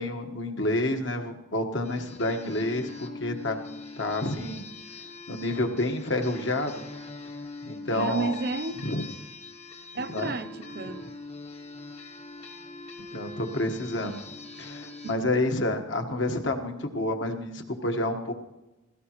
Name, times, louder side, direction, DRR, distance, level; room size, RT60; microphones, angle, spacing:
voice 1, 0.0-4.6 5.3-6.8 7.7-8.3 8.8-9.0 10.1-10.3 13.1-14.2 14.6-18.3, left 1 dB, 65° left, 1.4 m, -29 dB
sound 1, 1.8-15.1, left 3 dB, 30° left, 1.1 m, -43 dB
voice 2, 7.9-8.8 9.9-11.1, right 3 dB, 50° right, 0.6 m, -32 dB
16.5 x 16.5 x 3.1 m
head